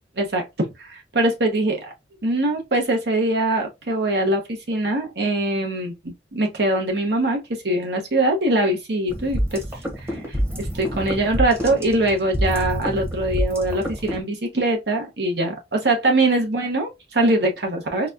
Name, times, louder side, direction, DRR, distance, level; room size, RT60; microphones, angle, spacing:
voice 1, 0.2-1.9 2.2-9.6 10.0-18.1, right 1 dB, 70° right, 1.0 m, -22 dB
sound 1, 9.1-14.2, equal, 15° right, 0.9 m, -27 dB
4.1 x 2.2 x 2.6 m
head